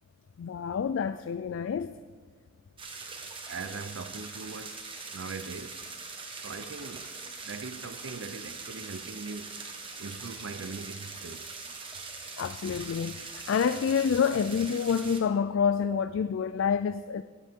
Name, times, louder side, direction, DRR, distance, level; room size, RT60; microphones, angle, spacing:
voice 1, 0.4-1.9 12.4-17.2, left 6 dB, 75° left, 0.3 m, -28 dB
sound 1, 2.8-15.2, right 4 dB, 25° right, 1.4 m, -42 dB
voice 2, 3.5-4.8 5.1-5.8 6.4-7.1 7.5-9.5 10.0-11.4, right 4 dB, 80° right, 0.6 m, -40 dB
19.0 x 8.3 x 3.6 m
head